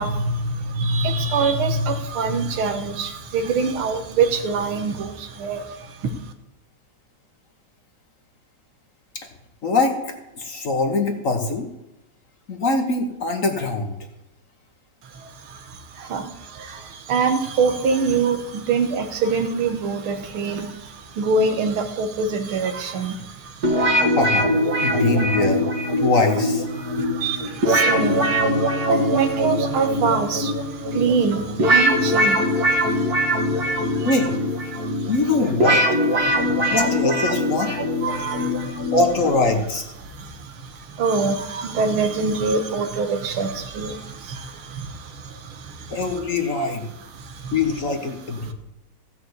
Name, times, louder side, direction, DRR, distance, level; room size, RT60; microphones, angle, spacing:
voice 1, 0.0-6.1 15.1-24.2 24.9-25.0 26.8-34.1 34.7-35.1 36.2-36.8 38.0-38.9 40.0-46.0 46.6-46.7 47.1-47.5 48.4-48.5, right 4 dB, 90° right, 7 dB, 2.0 m, -25 dB
voice 2, 9.6-11.7 12.5-13.9 24.1-24.5 24.8-25.7 26.0-26.7 34.0-34.3 35.1-35.8 36.6-37.8 38.9-39.9 45.9-46.9 47.5-48.5, left 3 dB, 45° left, 4 dB, 1.4 m, -22 dB
sound 1, 23.6-39.6, equal, 45° right, 2.3 m, -22 dB
15.5 x 5.7 x 8.0 m, 0.93 s
omnidirectional pair, 2.3 m